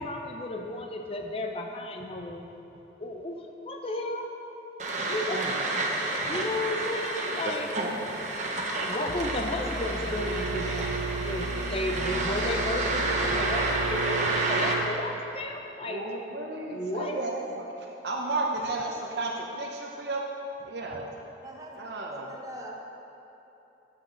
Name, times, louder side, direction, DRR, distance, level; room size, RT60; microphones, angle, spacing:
voice 1, 0.0-2.5 3.0-4.3 5.1-5.4 6.2-7.7 8.7-11.0 11.2-16.0 16.7-17.2, left 1 dB, 30° left, 3 dB, 0.7 m, -33 dB
sound 1, 4.8-14.7, right 2 dB, 40° right, 1.0 m, -30 dB
voice 2, 6.2-6.7 21.4-22.9, equal, 20° right, -1 dB, 1.1 m, -43 dB
sound 2, 9.1-14.0, left 1 dB, 70° left, 0.6 m, -37 dB
Bowed string instrument, 10.0-15.5, right 7 dB, 85° right, 0.3 m, -36 dB
voice 3, 15.8-20.2 20.7-21.0 21.8-22.3, right 2 dB, 70° right, -1 dB, 0.8 m, -33 dB
12.0 x 7.6 x 3.9 m, 3.0 s
head